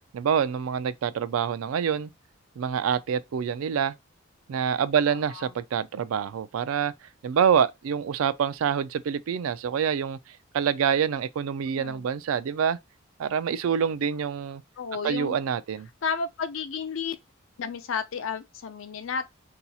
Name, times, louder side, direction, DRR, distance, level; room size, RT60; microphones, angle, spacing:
voice 1, 0.1-2.1 2.6-3.9 4.5-6.9 7.2-10.2 10.5-12.8 13.2-14.6 15.0-15.9, right 7 dB, 85° right, 0.4 m, -26 dB
voice 2, 5.1-5.5 11.8-12.1 14.8-15.4 16.0-17.2 17.6-19.3, left 6 dB, 70° left, 0.5 m, -32 dB
2.7 x 2.3 x 4.0 m
head